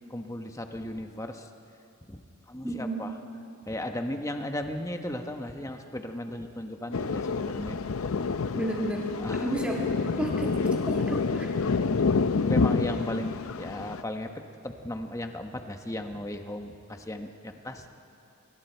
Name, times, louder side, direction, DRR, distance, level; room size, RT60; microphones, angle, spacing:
voice 1, 0.1-1.5 2.1-3.1 3.6-7.8 8.3-8.4 9.2-9.5 11.7-11.8 12.4-14.3 14.6-17.9, left 1 dB, 15° left, 5 dB, 1.0 m, -36 dB
voice 2, 2.6-3.0 8.5-9.0 9.4-9.9 10.2-11.5, right 1 dB, 5° right, -2 dB, 2.2 m, -31 dB
Thunder, 6.9-14.0, left 4 dB, 85° left, 0.6 m, -28 dB
25.5 x 24.0 x 4.5 m, 2.6 s
head